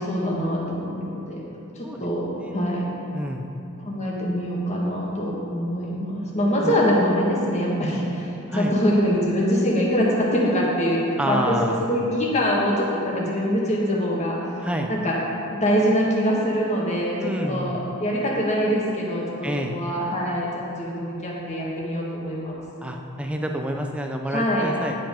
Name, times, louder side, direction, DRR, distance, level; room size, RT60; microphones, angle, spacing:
voice 1, 0.0-2.9 3.8-14.6 14.9-15.2 15.5-22.6 24.3-24.7, equal, 30° left, -3 dB, 1.4 m, -24 dB
voice 2, 2.4-2.8 3.1-3.5 6.6-6.7 8.5-8.7 11.2-11.8 14.6-14.9 17.2-17.8 19.4-19.8 22.8-24.9, equal, 5° right, 2 dB, 0.5 m, -28 dB
10.5 x 5.3 x 5.1 m, 2.8 s
head